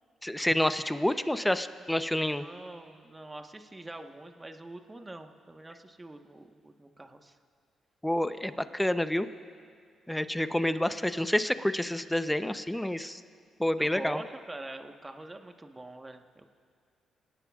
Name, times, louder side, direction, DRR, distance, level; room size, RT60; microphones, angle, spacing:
voice 1, 0.2-2.5 8.0-9.3 10.1-13.2 13.6-14.2, left 1 dB, 10° left, 11 dB, 0.9 m, -28 dB
voice 2, 2.4-7.4 13.8-16.5, right 2 dB, 20° right, 5 dB, 1.4 m, -44 dB
26.5 x 18.0 x 2.5 m, 2.3 s
hypercardioid pair, 50°, 0 cm